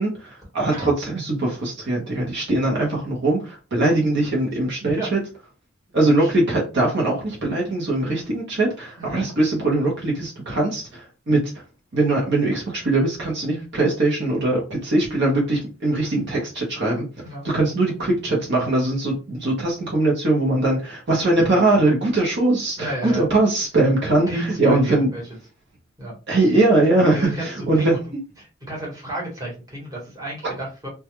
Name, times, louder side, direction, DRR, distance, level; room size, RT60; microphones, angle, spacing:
voice 1, 0.0-5.2 5.9-11.4 11.9-17.1 17.4-25.1 26.3-27.9, right 2 dB, 60° right, -2 dB, 0.8 m, -21 dB
voice 2, 22.8-23.2 24.3-25.2 26.0-26.1 27.1-28.0 28.4-30.9, right 1 dB, 20° right, -4 dB, 1.1 m, -32 dB
2.2 x 2.2 x 2.9 m, 0.32 s
head